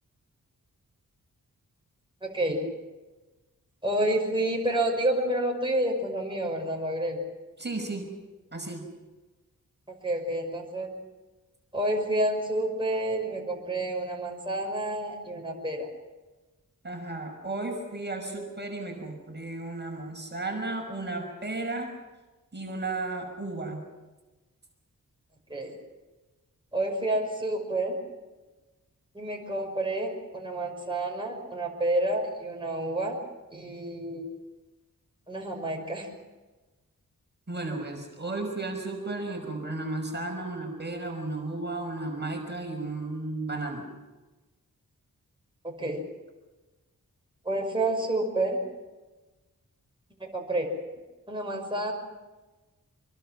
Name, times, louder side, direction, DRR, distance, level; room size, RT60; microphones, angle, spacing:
voice 1, 2.2-2.6 3.8-7.2 10.0-10.9 11.7-15.9 25.5-25.7 26.7-28.0 29.1-33.2 33.5-34.3 35.3-36.1 45.6-46.0 47.4-48.6 50.2-50.7 51.3-51.9, right 1 dB, 15° right, 0 dB, 5.5 m, -29 dB
voice 2, 7.6-8.1 8.5-8.9 16.8-21.9 22.5-23.8 37.5-43.9, right 2 dB, 30° right, 2 dB, 5.4 m, -34 dB
26.0 x 23.0 x 6.1 m, 1.2 s
wide cardioid pair, 75°, 33 cm